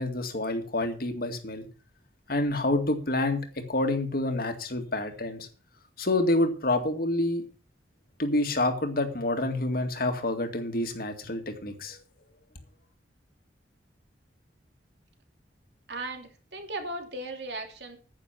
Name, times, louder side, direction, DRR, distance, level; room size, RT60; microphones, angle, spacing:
voice 1, 0.0-1.7 2.3-5.5 6.0-7.4 8.2-12.0, left 2 dB, 55° left, 6 dB, 2.1 m, -28 dB
voice 2, 15.9-18.0, right 2 dB, 65° right, 4 dB, 2.8 m, -37 dB
10.0 x 9.2 x 5.9 m, 0.38 s
head